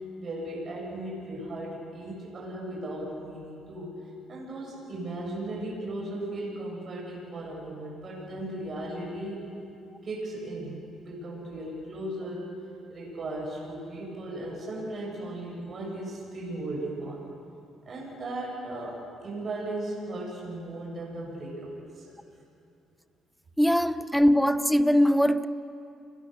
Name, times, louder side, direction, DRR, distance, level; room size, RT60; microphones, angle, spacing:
voice 1, 0.2-3.9 4.3-9.4 10.0-12.5 12.9-17.2 17.9-22.1, right 1 dB, 40° right, -3 dB, 7.8 m, -36 dB
voice 2, 23.6-25.5, equal, ahead, 13 dB, 0.8 m, -21 dB
30.0 x 22.0 x 6.8 m, 2.7 s
cardioid pair, 110°, 0 cm